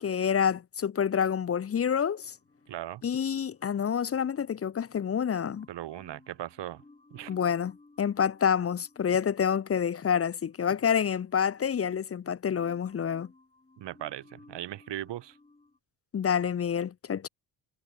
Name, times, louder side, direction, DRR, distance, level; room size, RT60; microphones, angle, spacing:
voice 1, 0.0-2.3 3.0-5.7 7.3-13.3 16.1-17.3, left 7 dB, 35° left, 0.7 m, -28 dB
sound 1, 1.7-5.0 5.4-12.3 12.5-15.8, left 2 dB, 15° left, 7.6 m, -60 dB
voice 2, 2.7-3.0 5.7-6.8 7.1-7.3 13.8-15.4, right 13 dB, 90° right, 2.2 m, -38 dB
cardioid pair, 140°, 41 cm